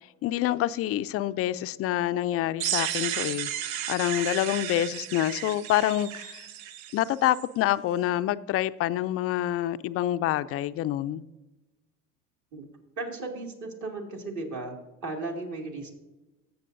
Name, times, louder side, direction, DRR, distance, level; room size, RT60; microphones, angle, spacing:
voice 1, 0.2-6.5 6.9-11.2, left 13 dB, 35° left, 0.4 m, -27 dB
sound 1, 2.6-7.4, right 11 dB, 80° right, 0.6 m, -33 dB
voice 2, 13.0-14.7 15.0-15.9, right 2 dB, 45° right, 2.2 m, -35 dB
15.0 x 7.1 x 2.6 m
hypercardioid pair, 75°, 41 cm